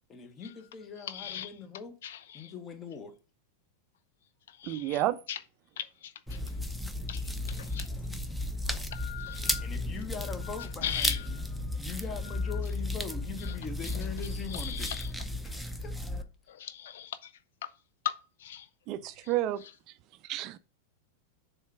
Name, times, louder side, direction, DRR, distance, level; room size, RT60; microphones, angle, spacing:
voice 1, 0.1-1.9 2.3-3.1 9.6-11.4 11.7-14.9 15.4-16.0, left 6 dB, 25° left, 1.2 m, -42 dB
voice 2, 1.0-1.5 2.0-2.5 4.5-5.4 5.8-6.6 7.1-7.9 8.6-9.7 10.6-11.4 12.3-12.6 13.4-13.6 13.8-15.1 16.5-17.3 17.6-17.7 18.0-18.7 19.2-19.3 19.6-19.7 20.3-20.4, left 10 dB, 60° left, 0.3 m, -40 dB
voice 3, 4.7-5.2 18.9-19.6 20.3-20.6, right 14 dB, 40° right, 0.4 m, -30 dB
sound 1, 6.3-16.2, left 1 dB, ahead, 0.6 m, -34 dB
7.1 x 3.4 x 5.8 m
figure-of-eight pair, 90°, 0 cm